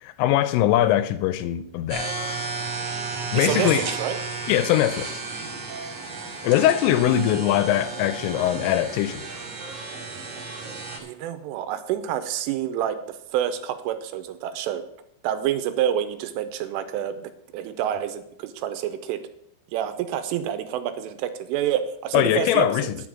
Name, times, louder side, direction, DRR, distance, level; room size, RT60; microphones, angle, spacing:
voice 1, 0.0-2.1 3.3-3.8 4.5-5.2 6.4-9.2 22.1-23.0, left 12 dB, 85° left, 3.0 m, -21 dB
sound 1, 1.9-11.0, right 4 dB, 45° right, 2.2 m, -33 dB
voice 2, 3.3-4.2 11.0-14.8 15.2-19.2 19.7-22.9, right 10 dB, 80° right, 3.1 m, -28 dB
10.5 x 7.3 x 7.4 m
omnidirectional pair, 5.9 m